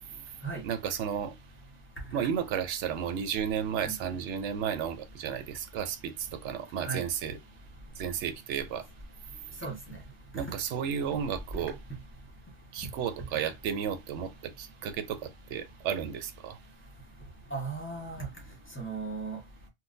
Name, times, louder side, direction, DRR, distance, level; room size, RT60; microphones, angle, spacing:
voice 1, 0.6-1.3 2.1-7.4 8.0-8.8 10.3-11.8 12.7-16.6, right 8 dB, 90° right, 0.9 m, -33 dB
voice 2, 17.5-18.3 18.8-19.4, right 4 dB, 10° left, 1.1 m, -36 dB
3.8 x 2.2 x 2.5 m
omnidirectional pair, 1.2 m